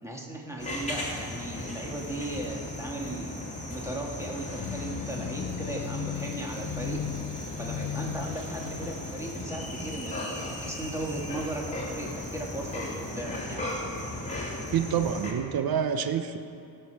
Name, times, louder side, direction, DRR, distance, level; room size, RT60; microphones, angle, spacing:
voice 1, 0.0-3.4 3.7-7.0 7.6-13.7, right 1 dB, 5° right, -2 dB, 2.4 m, -37 dB
sound 1, 0.6-15.3, left 1 dB, 15° left, 2.8 m, -36 dB
sound 2, 4.6-9.2, left 12 dB, 55° left, 0.5 m, -37 dB
voice 2, 14.7-16.4, right 8 dB, 60° right, 9 dB, 0.9 m, -27 dB
16.5 x 5.7 x 7.1 m, 2.6 s
cardioid pair, 70°, 41 cm